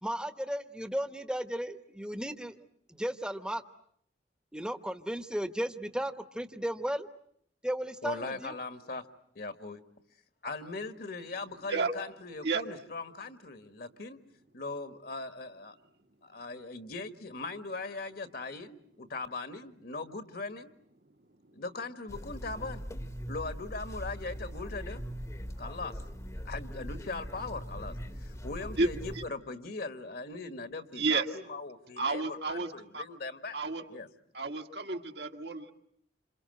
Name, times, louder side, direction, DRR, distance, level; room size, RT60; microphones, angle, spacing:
voice 1, 0.0-2.6 3.0-3.6 4.5-7.1 7.6-8.5, equal, 5° right, 10 dB, 1.1 m, -35 dB
voice 2, 8.0-9.0 9.3-9.8 10.4-14.2 14.5-15.8 16.2-20.7 21.5-22.9 23.3-25.0 25.6-25.9 26.4-27.9 28.2-33.6 33.9-34.1, left 3 dB, 55° left, 10 dB, 1.6 m, -40 dB
sound 1, 22.1-29.3, equal, 15° left, 1.1 m, -41 dB
voice 3, 30.9-31.3 32.0-33.0 33.5-33.8 34.3-35.7, right 4 dB, 65° right, 4 dB, 1.8 m, -31 dB
28.0 x 27.5 x 7.8 m, 0.68 s
head